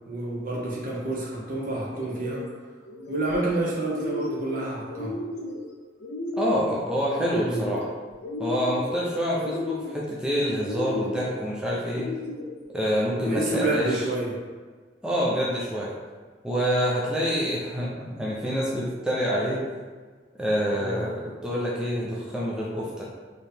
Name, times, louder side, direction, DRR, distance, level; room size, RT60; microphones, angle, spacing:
voice 1, 0.1-2.4 3.1-5.2 7.4-7.6 13.2-14.3 20.8-21.0, right 2 dB, 50° right, -3 dB, 1.0 m, -29 dB
sound 1, 2.0-2.5 2.9-3.5 3.8-4.5 4.9-5.6 6.0-6.7 7.1-7.9 8.2-8.9 9.3-10.1 10.6-11.3 11.8-12.5 13.1-13.9, left 2 dB, 70° left, 0.6 m, -33 dB
voice 2, 6.4-7.9 8.4-12.1 12.7-14.1 15.0-15.9 16.4-19.6 20.4-23.1, equal, 5° right, -6 dB, 0.6 m, -27 dB
4.5 x 3.1 x 3.4 m, 1.4 s
head